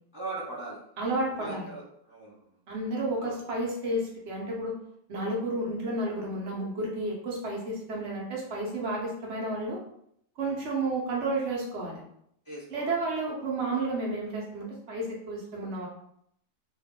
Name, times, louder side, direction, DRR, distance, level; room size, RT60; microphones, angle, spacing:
voice 1, 0.1-1.1 1.4-2.4 3.2-3.4 10.4-10.6 12.5-13.0, right 2 dB, 35° right, -6 dB, 0.3 m, -40 dB
voice 2, 1.0-1.7 2.7-4.8 5.1-9.8 10.4-12.0 12.7-15.9, right 2 dB, 50° right, -2 dB, 1.1 m, -31 dB
2.7 x 2.5 x 3.5 m, 0.70 s
omnidirectional pair, 1.6 m